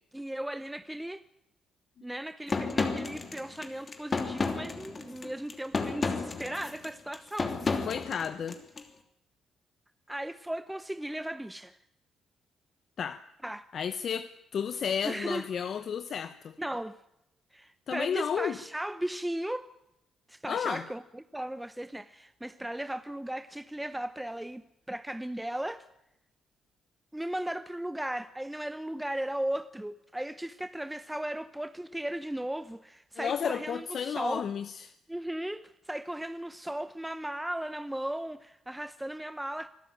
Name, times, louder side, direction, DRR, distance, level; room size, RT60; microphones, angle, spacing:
voice 1, 0.1-1.2 2.0-7.6 10.1-11.8 13.4-13.7 15.0-15.5 16.6-17.0 17.5-19.7 20.3-25.9 27.1-34.5 35.1-39.7, right 1 dB, 5° right, 0.8 m, -36 dB
sound 1, 2.5-8.8, left 4 dB, 35° left, 2.9 m, -32 dB
voice 2, 7.9-8.6 13.0-13.2 13.7-16.6 17.9-18.6 20.5-20.8 33.2-34.9, left 7 dB, 55° left, 0.9 m, -32 dB
25.0 x 13.0 x 9.0 m
cardioid pair, 90°, 0 cm